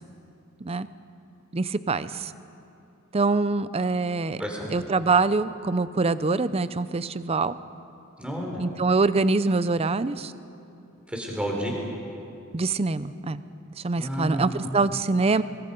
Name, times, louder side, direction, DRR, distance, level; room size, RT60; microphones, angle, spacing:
voice 1, 1.5-2.3 3.1-4.4 4.7-7.6 8.6-10.3 12.5-13.4 13.8-15.4, right 3 dB, 25° right, 14 dB, 0.5 m, -24 dB
voice 2, 4.4-4.7 8.2-8.6 11.1-11.7 13.9-14.7, equal, 5° right, -1 dB, 3.5 m, -31 dB
23.5 x 23.5 x 5.3 m, 2.7 s
head